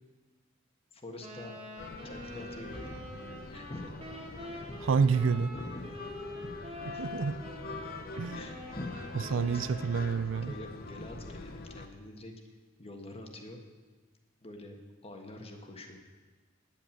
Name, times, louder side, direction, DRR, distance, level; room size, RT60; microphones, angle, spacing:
voice 1, 0.9-1.5 2.0-3.0 3.5-4.0 4.5-4.8 5.5-5.8 6.9-7.1 8.3-9.7 10.5-12.3 12.8-13.6 14.4-14.8 15.0-16.0, left 1 dB, 30° left, 3 dB, 1.5 m, -45 dB
Wind instrument woodwind instrument, 1.2-10.2, left 1 dB, 35° right, 1.9 m, -45 dB
sound 1, 1.8-11.9, left 2 dB, 50° left, 0.8 m, -45 dB
voice 2, 4.9-5.5 7.0-7.4 8.2-8.4 9.3-10.5, right 5 dB, 75° right, 16 dB, 0.4 m, -28 dB
9.6 x 8.7 x 8.9 m, 1.3 s
head